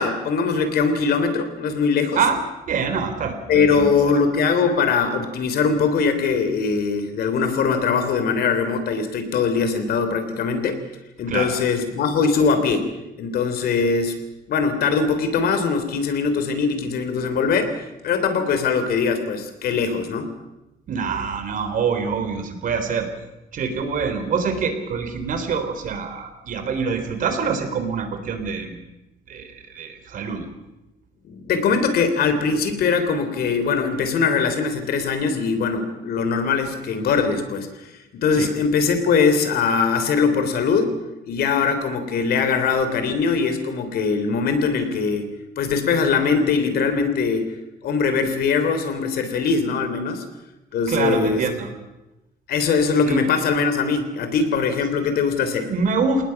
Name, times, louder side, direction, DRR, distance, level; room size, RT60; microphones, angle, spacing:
voice 1, 0.0-2.2 3.5-10.8 11.2-12.9 13.2-14.1 14.5-20.3 31.2-40.9 41.3-45.3 45.6-47.4 47.8-50.2 50.7-51.4 52.5-55.7, left 5 dB, 70° left, 8 dB, 3.5 m, -21 dB
voice 2, 2.7-3.9 11.3-11.5 20.9-23.1 23.5-28.8 29.3-30.5 38.3-38.5 50.9-51.7 53.1-53.2 55.7-56.3, right 5 dB, 55° right, 7 dB, 3.5 m, -25 dB
29.0 x 19.0 x 6.0 m, 0.97 s
cardioid pair, 145°, 17 cm